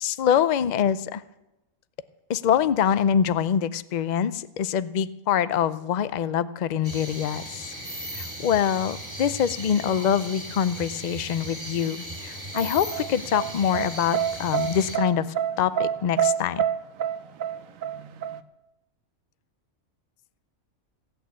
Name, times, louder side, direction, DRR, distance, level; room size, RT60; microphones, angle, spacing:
voice 1, 0.0-1.2 2.3-7.7 8.1-15.3 15.6-16.6, left 9 dB, 60° left, 16 dB, 0.4 m, -24 dB
sound 1, 6.8-15.0, right 1 dB, 20° right, 2.8 m, -37 dB
sound 2, 12.5-18.4, right 9 dB, 75° right, 1.1 m, -27 dB
16.0 x 8.7 x 8.3 m, 0.95 s
omnidirectional pair, 1.4 m